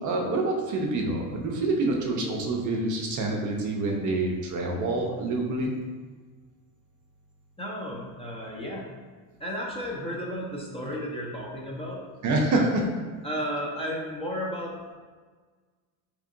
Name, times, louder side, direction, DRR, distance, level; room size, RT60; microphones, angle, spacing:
voice 1, 0.0-5.7 12.2-12.8, right 2 dB, 40° right, 0 dB, 0.6 m, -27 dB
voice 2, 7.6-8.9 9.4-12.0 12.5-12.6 13.2-15.0, equal, 10° left, -4 dB, 0.6 m, -33 dB
3.3 x 3.0 x 2.5 m, 1.4 s
supercardioid pair, 80°, 46 cm